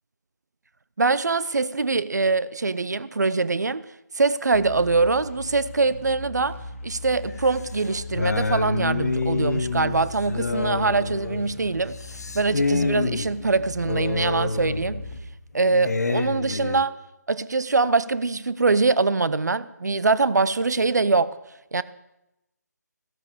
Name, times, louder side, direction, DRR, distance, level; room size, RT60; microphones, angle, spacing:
voice 1, 1.0-3.8 4.2-6.6 6.8-12.0 12.3-15.0 15.5-16.9 17.3-21.3 21.7-21.8, right 3 dB, 65° right, 0.7 m, -23 dB
sound 1, 4.5-15.2, left 2 dB, 45° left, 1.6 m, -39 dB
sound 2, 7.2-16.8, left 3 dB, 60° left, 1.0 m, -28 dB
16.0 x 12.5 x 5.0 m
figure-of-eight pair, 150°, 10 cm